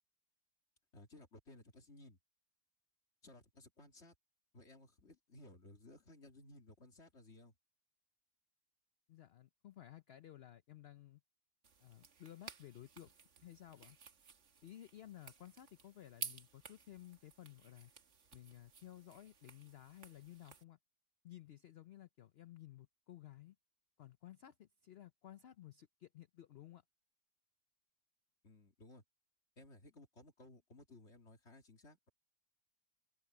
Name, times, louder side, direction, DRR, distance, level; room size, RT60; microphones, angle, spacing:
voice 1, 0.9-2.2 3.2-4.1 4.5-7.5 28.4-29.0 29.6-32.1, left 2 dB, 45° left, 2.8 m, -59 dB
voice 2, 9.1-11.2 11.8-13.1 13.4-14.0 14.6-17.9 18.3-20.8 21.2-23.6 24.0-26.8, left 12 dB, 60° left, 0.6 m, -56 dB
sound 1, 11.6-20.6, right 6 dB, 50° right, 1.5 m, -54 dB
open air
omnidirectional pair, 1.6 m